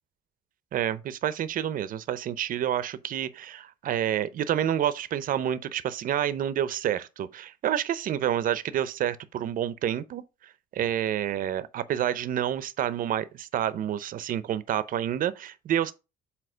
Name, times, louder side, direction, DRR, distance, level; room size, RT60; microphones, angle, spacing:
voice 1, 0.7-10.2 10.7-15.9, right 10 dB, 55° right, 0.7 m, -28 dB
7.8 x 2.9 x 5.0 m
cardioid pair, 110°, 17 cm